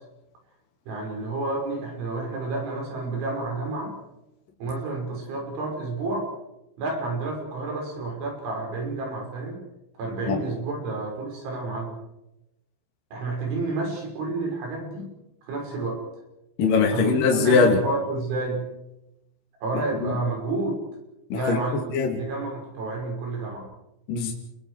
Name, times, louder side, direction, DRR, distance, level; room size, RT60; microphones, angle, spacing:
voice 1, 0.9-4.0 4.6-6.3 6.8-9.6 10.0-12.0 13.1-15.1 15.5-16.0 16.9-18.7 19.6-20.8 21.3-21.8 22.2-23.7, right 3 dB, 75° right, 1 dB, 8.0 m, -30 dB
voice 2, 16.6-17.8 20.0-20.1 21.3-22.2 24.1-24.3, left 4 dB, 50° left, 0 dB, 3.6 m, -21 dB
29.5 x 21.5 x 4.9 m, 0.92 s
omnidirectional pair, 5.5 m